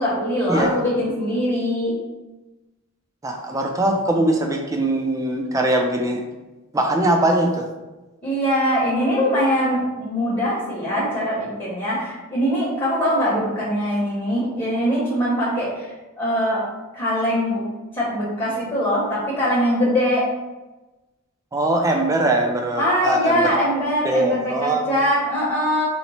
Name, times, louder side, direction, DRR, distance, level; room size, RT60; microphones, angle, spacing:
voice 1, 0.0-1.9 8.2-15.9 16.2-16.6 16.9-17.6 17.9-20.2 22.8-25.8, equal, 25° left, -8 dB, 0.8 m, -22 dB
voice 2, 3.2-6.2 6.7-7.6 21.5-23.5 24.0-24.8, right 1 dB, 15° right, 2 dB, 0.3 m, -21 dB
2.8 x 2.0 x 4.1 m, 1.1 s
head